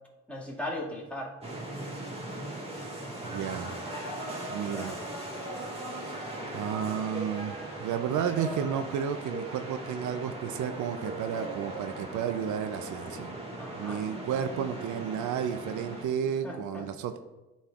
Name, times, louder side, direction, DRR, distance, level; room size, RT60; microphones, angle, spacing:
voice 1, 0.3-1.3 4.6-5.2 13.6-14.0 16.4-16.9, left 1 dB, 5° left, -5 dB, 2.0 m, -38 dB
sound 1, 1.4-16.0, right 1 dB, 20° right, 1.6 m, -39 dB
voice 2, 3.2-3.7 4.5-5.0 5.9-6.2 6.5-13.3 13.8-17.2, right 8 dB, 75° right, 9 dB, 0.5 m, -32 dB
11.0 x 4.3 x 2.4 m, 1.1 s
cardioid pair, 90°, 30 cm